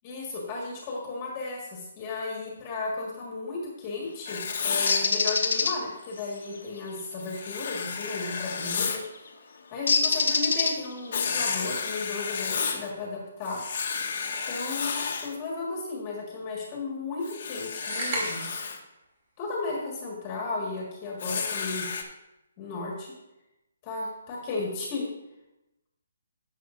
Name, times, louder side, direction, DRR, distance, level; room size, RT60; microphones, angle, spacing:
voice 1, 0.0-9.3 9.7-13.6 14.4-14.9 15.2-18.5 19.4-21.9 22.6-23.1 23.8-25.1, left 3 dB, 20° left, -3 dB, 1.7 m, -34 dB
Writing, 4.3-5.1 7.2-9.0 11.1-12.9 13.4-15.4 17.2-18.8 21.2-22.0, left 6 dB, 45° left, 1.2 m, -31 dB
Bird, 4.9-5.7 8.3-8.6 9.9-11.1, left 4 dB, 70° left, 1.2 m, -24 dB
sound 1, 17.9-18.7, right 2 dB, 45° right, 2.7 m, -32 dB
14.0 x 6.6 x 2.6 m, 0.93 s
hypercardioid pair, 170°, 0 cm